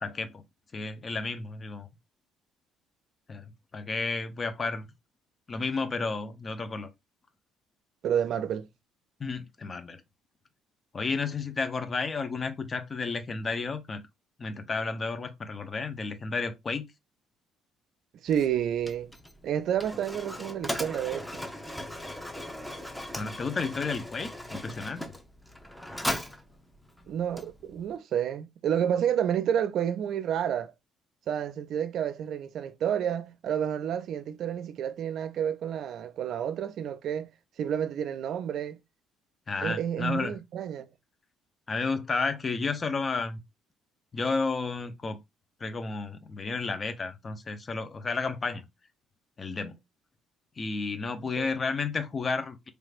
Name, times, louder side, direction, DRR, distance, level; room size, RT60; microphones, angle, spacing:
voice 1, 0.0-0.4 0.7-1.9 3.3-3.4 3.7-4.9 5.5-6.9 9.2-10.0 10.9-14.0 14.4-16.9 23.2-25.0 39.5-40.4 41.7-43.4 44.1-45.2 45.6-48.6 49.4-49.8 50.6-52.7, left 4 dB, 35° left, 0.8 m, -32 dB
voice 2, 8.0-8.7 18.2-19.1 19.4-21.4 27.1-30.7 31.3-37.3 37.6-38.8 39.6-40.9 51.4-51.5, right 9 dB, 60° right, 0.4 m, -30 dB
Mechanisms, 18.3-28.0, left 1 dB, 5° left, 0.9 m, -38 dB
3.2 x 3.2 x 2.5 m
hypercardioid pair, 55°, 0 cm